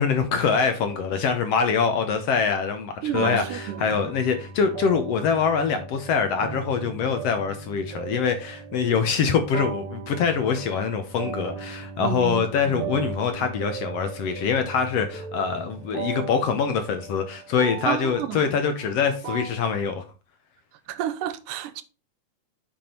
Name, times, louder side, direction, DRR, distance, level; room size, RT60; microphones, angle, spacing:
voice 1, 0.0-20.0, left 6 dB, 70° left, 1.5 m, -24 dB
voice 2, 3.0-4.1 12.0-12.9 17.8-18.4 20.9-21.8, right 11 dB, 90° right, 2.3 m, -30 dB
sound 1, 3.1-19.8, right 5 dB, 60° right, 1.5 m, -37 dB
7.8 x 5.3 x 4.3 m
omnidirectional pair, 3.7 m